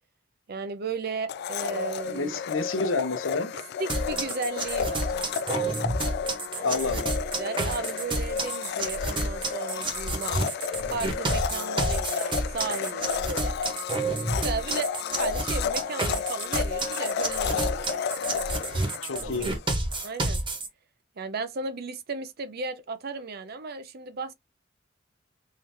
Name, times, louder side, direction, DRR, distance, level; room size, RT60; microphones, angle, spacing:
voice 1, 0.5-2.4 3.8-5.1 6.5-6.7 7.4-10.4 10.9-13.6 14.4-14.9 15.2-18.0 19.2-19.5 20.0-20.4 21.2-24.3, right 4 dB, 55° right, 0.6 m, -35 dB
Domestic sounds home sounds, 1.3-20.1, left 7 dB, 55° left, 0.3 m, -32 dB
voice 2, 2.0-3.5 6.6-7.1 19.0-19.5, left 3 dB, 85° left, 0.8 m, -29 dB
sound 1, 3.9-20.7, right 2 dB, 25° right, 1.0 m, -30 dB
3.8 x 2.7 x 3.3 m
head